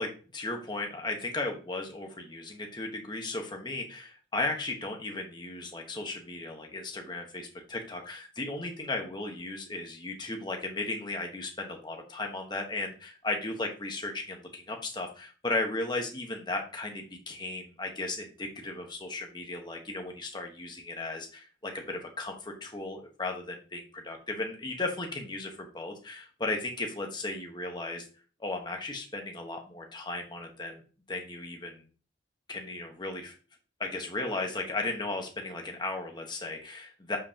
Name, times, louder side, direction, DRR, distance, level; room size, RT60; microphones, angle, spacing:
voice 1, 0.0-28.1 28.4-30.8 31.1-31.8 32.5-33.3 33.8-37.2, left 2 dB, 25° left, 3 dB, 1.2 m, -35 dB
7.9 x 5.5 x 2.9 m, 0.37 s
head